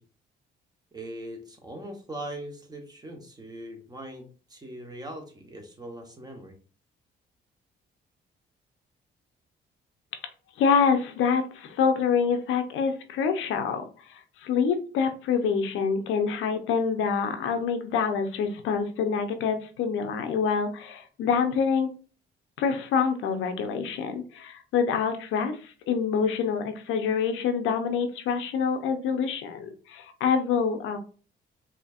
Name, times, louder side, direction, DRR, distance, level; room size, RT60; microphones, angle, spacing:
voice 1, 0.9-6.5, right 1 dB, 20° right, 3 dB, 1.1 m, -40 dB
voice 2, 10.6-13.8 14.1-21.9 22.6-31.0, left 6 dB, 85° left, 7 dB, 0.7 m, -26 dB
4.2 x 2.8 x 2.4 m, 0.38 s
cardioid pair, 90°, 20 cm